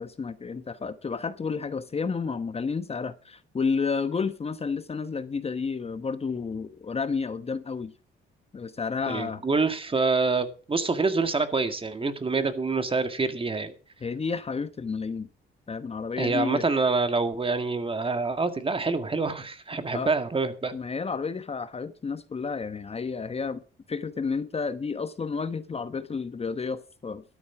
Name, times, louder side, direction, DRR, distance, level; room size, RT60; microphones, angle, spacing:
voice 1, 0.0-7.9 8.5-9.4 14.0-15.3 15.7-16.6 19.9-20.1 20.7-23.6 23.9-27.2, left 5 dB, 30° left, 1.0 m, -31 dB
voice 2, 9.1-13.7 16.2-20.7, right 4 dB, 25° right, 2.0 m, -26 dB
13.0 x 9.5 x 6.0 m
cardioid pair, 90°, 20 cm